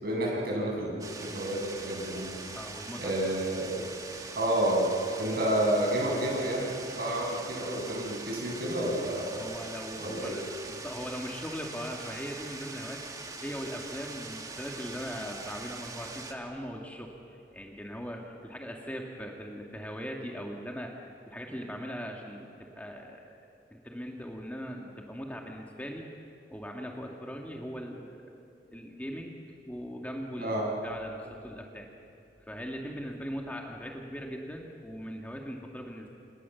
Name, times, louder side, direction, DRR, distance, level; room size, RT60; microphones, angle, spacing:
voice 1, 0.0-2.3 3.0-3.8 4.3-4.9 5.2-9.4 10.0-10.4 30.4-30.7, right 1 dB, 60° right, -2 dB, 7.9 m, -30 dB
sound 1, 1.0-16.3, right 3 dB, 20° right, 1.8 m, -43 dB
voice 2, 2.5-3.3 9.4-10.4 10.7-23.5 23.7-26.0 26.5-28.4 28.7-30.5 30.8-31.9 32.5-36.1, equal, 10° left, 0 dB, 2.2 m, -40 dB
28.5 x 28.0 x 7.2 m, 2.5 s
head